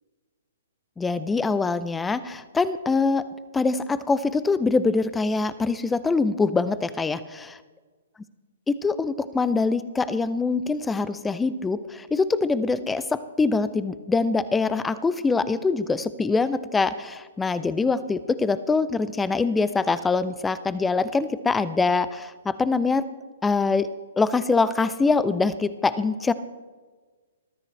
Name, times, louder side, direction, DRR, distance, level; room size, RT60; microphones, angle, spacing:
voice 1, 1.0-3.2 3.5-7.5 8.7-23.0 23.4-23.9 24.2-26.3, left 4 dB, 10° left, 15 dB, 0.6 m, -24 dB
21.0 x 13.0 x 3.3 m, 1.4 s
figure-of-eight pair, 125°, 0 cm